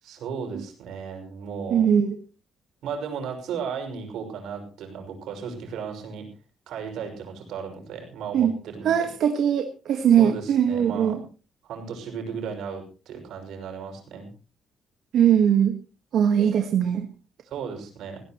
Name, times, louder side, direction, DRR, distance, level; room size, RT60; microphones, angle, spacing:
voice 1, 0.0-1.9 2.8-6.3 6.7-9.1 10.2-11.2 11.6-14.3 17.4-18.2, right 6 dB, 85° right, 3 dB, 6.1 m, -35 dB
voice 2, 1.7-2.2 8.3-8.5 8.8-11.2 15.1-15.8 16.1-17.1, right 8 dB, 70° right, 6 dB, 1.5 m, -20 dB
18.5 x 17.5 x 3.0 m, 0.35 s
cardioid pair, 135°, 0 cm